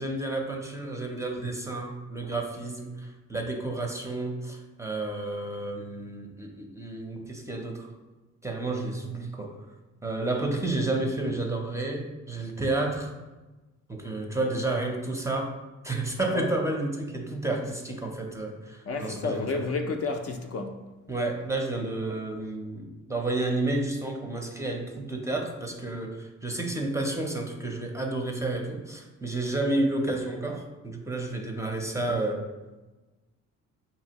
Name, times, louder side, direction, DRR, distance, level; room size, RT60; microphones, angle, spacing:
voice 1, 0.0-7.9 8.4-9.6 10.0-13.1 13.9-15.5 15.8-19.5 21.1-32.5, right 2 dB, 10° right, 0.5 m, -31 dB
voice 2, 16.2-16.5 18.8-20.9, left 3 dB, 50° left, 0.5 m, -31 dB
5.1 x 2.8 x 2.8 m
cardioid pair, 90°, 30 cm